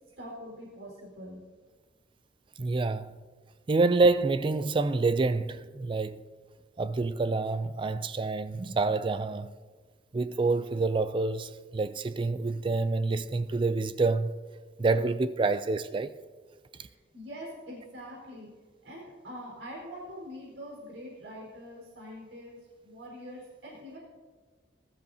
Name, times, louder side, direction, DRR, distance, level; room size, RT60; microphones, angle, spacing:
voice 1, 0.2-1.4 16.8-18.5 18.8-22.6 22.8-24.0, equal, 85° right, 4.4 m, -44 dB
voice 2, 2.6-3.1 3.7-6.2 6.8-9.5 10.1-14.3 14.8-16.1, right 3 dB, 25° right, 0.3 m, -27 dB
19.5 x 13.0 x 2.8 m
head